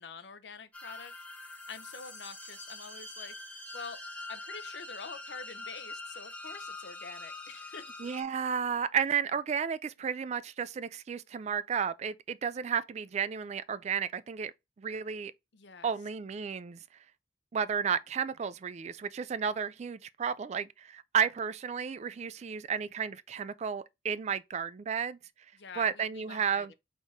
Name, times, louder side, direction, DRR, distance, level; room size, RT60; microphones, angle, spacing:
voice 1, 0.0-3.4 3.7-4.0 4.3-7.9 15.5-15.9 25.5-26.7, left 5 dB, 75° left, 0.6 m, -46 dB
sound 1, 0.7-8.2, left 2 dB, 10° left, 0.8 m, -44 dB
voice 2, 8.0-14.5 14.8-15.3 15.8-16.8 17.5-25.2 25.8-26.7, right 7 dB, 40° right, 0.3 m, -32 dB
4.1 x 3.5 x 3.5 m
head